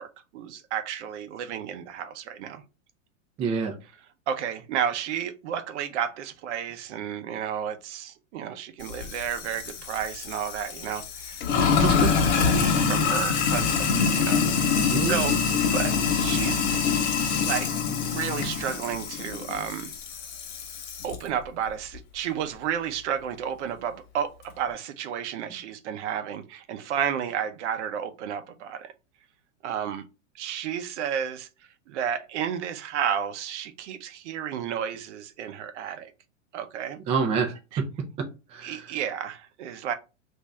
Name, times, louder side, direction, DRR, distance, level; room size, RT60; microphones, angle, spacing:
voice 1, 0.0-2.6 4.3-11.4 11.9-12.1 12.4-14.7 15.1-15.4 15.7-16.6 17.4-17.7 18.0-19.9 21.0-28.9 29.6-30.0 30.3-31.5 31.9-36.1 36.5-37.0 37.7-37.8 38.6-39.9, right 9 dB, 60° right, 0.7 m, -32 dB
voice 2, 3.4-3.7 11.8-12.1 14.9-15.2 37.1-37.6 38.5-38.9, right 5 dB, 15° right, 0.4 m, -27 dB
Sink (filling or washing), 8.8-21.2, left 6 dB, 55° left, 1.2 m, -25 dB
3.0 x 2.6 x 3.4 m
hypercardioid pair, 125°, 39 cm